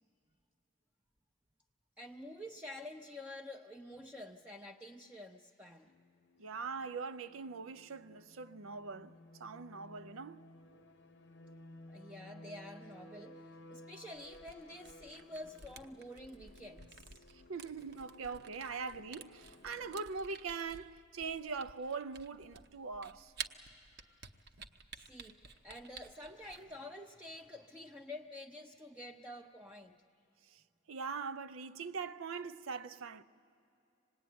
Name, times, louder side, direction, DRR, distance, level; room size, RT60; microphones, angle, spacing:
voice 1, 2.0-5.9 11.9-17.3 24.0-24.2 24.9-30.0, left 1 dB, 5° right, 0.5 m, -49 dB
sound 1, 5.8-20.0, left 1 dB, 55° left, 0.7 m, -57 dB
voice 2, 6.4-10.5 17.5-23.3 30.5-30.6 30.9-33.2, right 5 dB, 85° right, 0.6 m, -42 dB
Camera, 14.2-26.6, right 6 dB, 50° right, 0.8 m, -51 dB
26.0 x 19.5 x 9.3 m
head